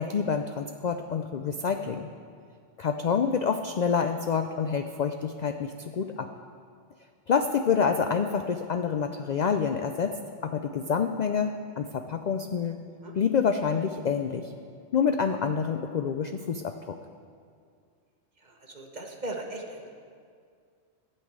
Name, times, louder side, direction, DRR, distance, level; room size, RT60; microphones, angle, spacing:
voice 1, 0.0-2.1 2.8-6.3 7.3-10.2 10.4-12.8 13.2-14.5 14.9-17.0, left 6 dB, 65° left, 6 dB, 0.4 m, -27 dB
voice 2, 18.4-19.9, right 1 dB, 40° right, 2 dB, 1.2 m, -38 dB
13.0 x 5.6 x 8.6 m, 2.2 s
omnidirectional pair, 1.3 m